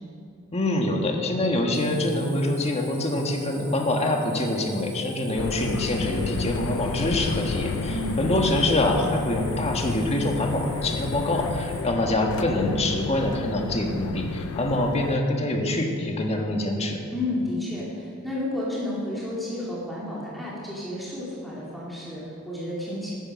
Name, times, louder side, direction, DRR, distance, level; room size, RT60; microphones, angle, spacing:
voice 1, 0.5-7.9 8.2-17.0, left 1 dB, 30° left, 2 dB, 1.6 m, -25 dB
Cricket, 1.7-11.8, right 5 dB, 70° right, 3.4 m, -47 dB
sound 1, 5.3-15.2, left 6 dB, 75° left, 0.4 m, -32 dB
voice 2, 7.9-8.2 17.1-23.1, left 1 dB, ahead, -8 dB, 2.5 m, -31 dB
14.0 x 10.0 x 6.3 m, 2.5 s
head